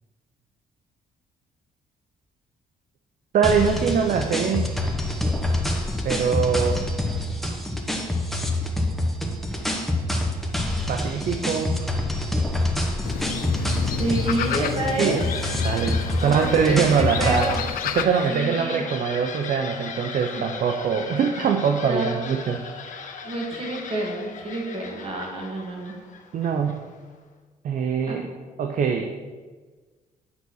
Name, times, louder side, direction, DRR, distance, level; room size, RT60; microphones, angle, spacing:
voice 1, 3.3-4.7 6.0-6.9 10.9-11.9 15.0-15.3 15.6-17.5 17.9-22.8 26.3-26.8 27.6-28.2 28.6-29.1, right 6 dB, 60° right, 4 dB, 0.7 m, -23 dB
sound 1, 3.4-17.7, left 1 dB, ahead, 1.1 m, -26 dB
sound 2, 13.0-18.0, left 9 dB, 70° left, 0.6 m, -31 dB
voice 2, 14.0-15.2 16.2-17.6 18.3-18.9 20.3-20.4 21.0-21.2 21.8-22.1 23.2-26.0 28.1-28.2, right 1 dB, 40° right, -1 dB, 2.5 m, -29 dB
sound 3, 14.7-27.1, left 5 dB, 55° left, 1.1 m, -38 dB
9.7 x 4.1 x 6.4 m, 1.4 s
cardioid pair, 105°, 15 cm